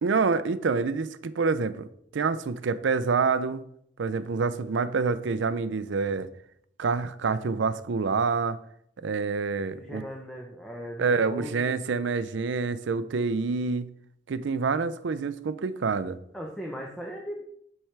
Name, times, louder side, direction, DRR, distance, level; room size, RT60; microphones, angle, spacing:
voice 1, 0.0-3.6 4.0-6.3 6.8-8.6 9.0-10.0 11.0-13.9 14.3-16.2, right 4 dB, 70° right, 14 dB, 0.4 m, -27 dB
voice 2, 9.7-11.7 16.3-17.4, equal, ahead, -2 dB, 0.8 m, -38 dB
10.0 x 4.4 x 3.3 m, 0.70 s
head